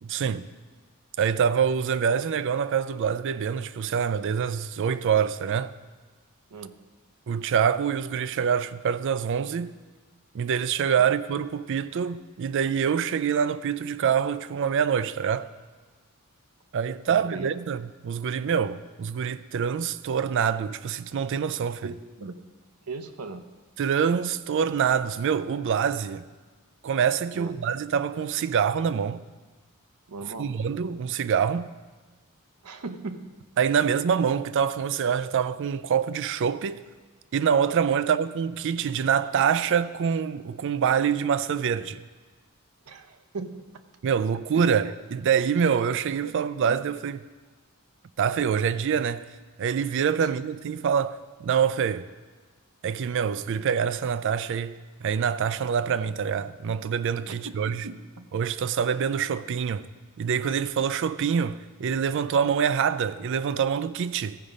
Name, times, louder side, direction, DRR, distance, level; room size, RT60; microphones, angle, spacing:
voice 1, 0.0-0.5 1.2-5.7 7.3-9.8 10.3-15.5 16.7-21.9 23.8-26.2 26.8-29.2 30.4-31.7 33.6-36.8 37.3-42.0 44.0-47.2 48.2-49.2 49.6-52.1 52.8-57.9 58.3-59.9 60.2-64.4, right 7 dB, 55° right, 0.3 m, -25 dB
voice 2, 17.1-17.5 21.8-21.9 22.2-22.4 22.9-23.4 27.3-27.5 30.1-30.5 32.6-33.3 42.9-43.6 44.5-44.8 46.2-46.3 46.6-46.8 50.2-50.3 57.3-58.3, right 4 dB, 90° right, 0.7 m, -38 dB
14.5 x 5.3 x 5.0 m
head